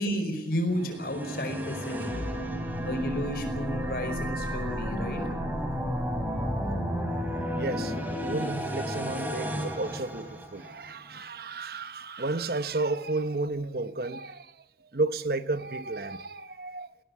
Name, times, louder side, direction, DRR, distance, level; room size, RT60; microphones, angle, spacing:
voice 1, 0.0-2.2 2.8-5.2, equal, 55° left, 5.1 m, -32 dB
sound 1, 0.7-10.9, equal, 10° right, 3.6 m, -32 dB
voice 2, 7.6-7.9 8.2-14.5 14.9-16.9, right 3 dB, 55° right, 1.0 m, -32 dB
19.5 x 18.5 x 9.7 m
head